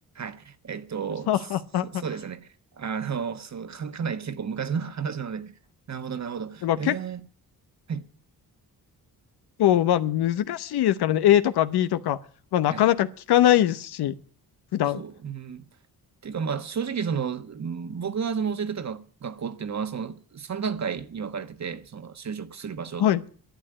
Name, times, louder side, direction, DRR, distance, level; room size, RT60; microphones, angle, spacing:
voice 1, 0.1-1.4 1.8-2.5 2.8-5.5 5.9-7.2 7.9-8.1 12.7-12.9 14.9-15.7 16.2-23.1, right 6 dB, 45° right, 1.3 m, -32 dB
voice 2, 1.3-2.0 6.6-7.0 9.6-12.2 12.5-14.2 14.7-15.0 23.0-23.2, left 12 dB, 90° left, 0.9 m, -22 dB
12.0 x 8.8 x 8.8 m
cardioid pair, 90°, 38 cm